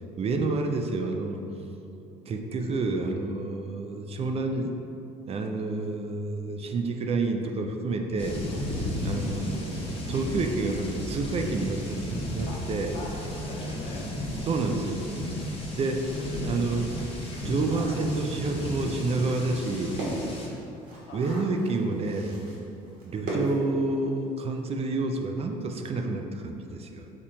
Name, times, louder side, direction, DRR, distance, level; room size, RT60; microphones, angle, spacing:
voice 1, 0.2-1.4 2.3-4.7 5.3-8.4 9.0-12.9 14.4-15.1 15.7-16.1 16.4-20.0 21.1-22.4 23.1-27.1, right 3 dB, 40° right, 4 dB, 0.4 m, -29 dB
sound 1, 8.2-20.5, left 1 dB, 35° left, 1.0 m, -34 dB
voice 2, 8.5-9.2 12.5-12.6 12.9-14.2 16.1-16.9 21.1-21.2 21.5-21.8, left 1 dB, 70° left, -1 dB, 0.8 m, -41 dB
sound 2, 16.5-24.4 24.6-24.7 25.0-25.3, right 1 dB, 70° right, 1.2 m, -39 dB
4.4 x 2.4 x 4.2 m, 2.7 s
supercardioid pair, 80°, 16 cm